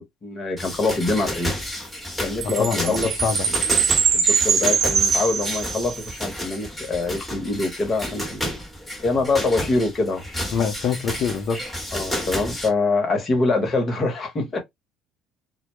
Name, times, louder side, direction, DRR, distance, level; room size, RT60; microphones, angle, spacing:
voice 1, 0.2-1.5 2.2-3.1 4.1-8.5 9.0-10.2 11.9-14.6, left 3 dB, 35° left, 0.9 m, -24 dB
sound 1, 0.6-12.7, left 1 dB, 5° left, 1.0 m, -31 dB
Chime, 2.4-6.1, right 6 dB, 55° right, 0.6 m, -22 dB
voice 2, 2.6-3.5 10.5-11.6, left 6 dB, 55° left, 0.6 m, -25 dB
2.1 x 2.0 x 2.9 m
cardioid pair, 110°, 0 cm